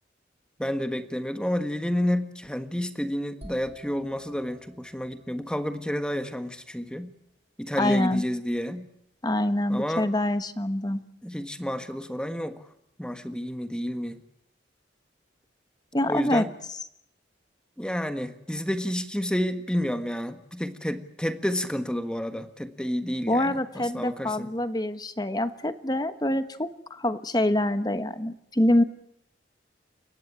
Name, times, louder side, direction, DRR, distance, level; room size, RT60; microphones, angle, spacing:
voice 1, 0.6-7.1 7.6-8.9 9.7-10.1 11.2-12.6 13.0-14.2 16.1-16.5 17.8-24.5, equal, 5° left, 9 dB, 1.5 m, -30 dB
sound 1, 3.4-7.2, right 1 dB, 35° right, 2.4 m, -52 dB
voice 2, 7.8-8.2 9.2-11.0 15.9-16.5 23.3-28.8, left 1 dB, 20° left, 11 dB, 1.2 m, -25 dB
29.5 x 16.0 x 9.0 m, 0.80 s
head